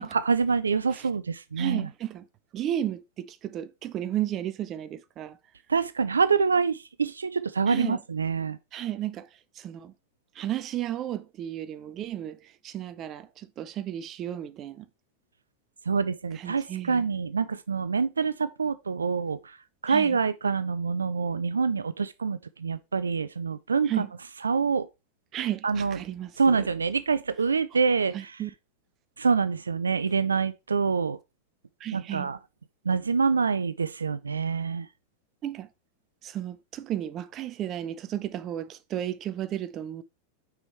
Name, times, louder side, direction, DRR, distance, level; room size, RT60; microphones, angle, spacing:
voice 1, 0.1-1.9 5.7-8.6 15.9-19.6 19.8-24.1 24.4-24.9 25.6-26.0 26.4-28.3 29.2-31.2 31.9-32.4 32.9-34.9, right 5 dB, 75° right, 0.4 m, -26 dB
voice 2, 1.6-2.3 2.5-5.4 7.7-8.0 8.7-9.3 9.6-9.9 10.4-14.9 16.3-17.1 19.9-20.2 23.9-24.1 25.3-26.7 28.1-28.5 31.8-32.3 35.4-35.7 36.2-40.0, right 11 dB, 30° right, 0.6 m, -33 dB
6.1 x 4.9 x 4.4 m
figure-of-eight pair, 90°, 0 cm